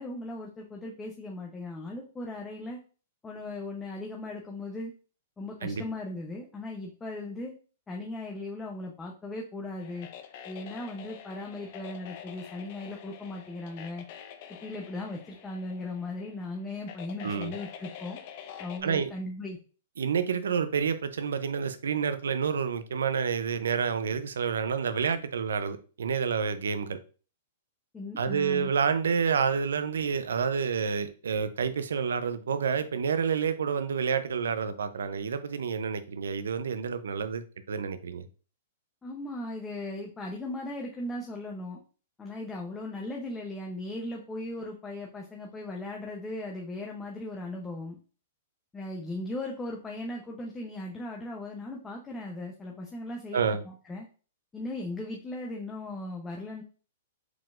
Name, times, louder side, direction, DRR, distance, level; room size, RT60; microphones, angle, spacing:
voice 1, 0.0-2.8 3.2-4.9 5.4-7.5 7.9-10.1 10.4-14.1 14.6-18.2 18.6-19.6 27.9-28.7 39.0-41.8 42.2-48.0 48.7-54.1 54.5-56.6, left 2 dB, 15° left, -1 dB, 0.8 m, -38 dB
sound 1, 9.8-18.8, left 9 dB, 50° left, 0.6 m, -47 dB
voice 2, 17.2-17.5 18.8-19.1 20.0-27.0 28.2-38.2 53.3-53.6, right 6 dB, 80° right, 11 dB, 0.5 m, -29 dB
4.7 x 3.7 x 2.5 m, 0.37 s
hypercardioid pair, 130°, 0 cm